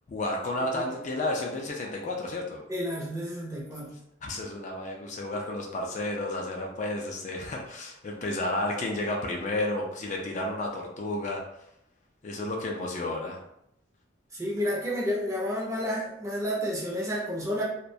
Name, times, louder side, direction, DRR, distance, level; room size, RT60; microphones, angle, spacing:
voice 1, 0.1-2.6 4.2-11.4 12.2-13.4, left 2 dB, 40° left, 0 dB, 0.3 m, -32 dB
voice 2, 2.7-4.0 14.3-17.6, equal, 15° right, -4 dB, 0.5 m, -30 dB
2.3 x 2.1 x 2.6 m, 0.77 s
head